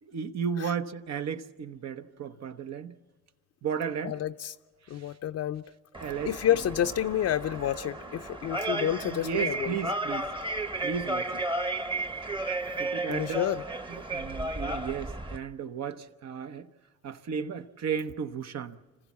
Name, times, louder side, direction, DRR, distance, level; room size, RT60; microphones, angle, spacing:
voice 1, 0.0-2.9 3.6-4.2 4.8-5.2 5.9-6.6 8.7-10.3 10.8-11.4 12.8-13.5 13.9-16.7 17.0-18.8, right 7 dB, 60° right, 0.9 m, -34 dB
voice 2, 4.0-4.5 4.9-5.6 6.3-9.7 13.1-13.6, left 11 dB, 55° left, 0.5 m, -29 dB
sound 1, 5.9-15.4, right 2 dB, 15° right, 1.0 m, -33 dB
26.0 x 15.0 x 7.2 m
cardioid pair, 90°, 30 cm